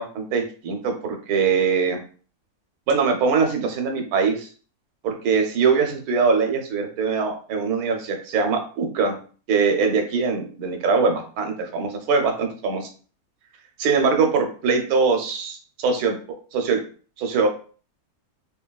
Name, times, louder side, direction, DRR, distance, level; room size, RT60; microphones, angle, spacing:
voice 1, 0.0-2.0 2.9-4.5 5.0-9.2 9.5-12.9 13.8-16.2 16.5-16.8 17.2-17.5, right 5 dB, 80° right, 4 dB, 1.1 m, -22 dB
2.9 x 2.8 x 2.2 m, 0.41 s
omnidirectional pair, 1.6 m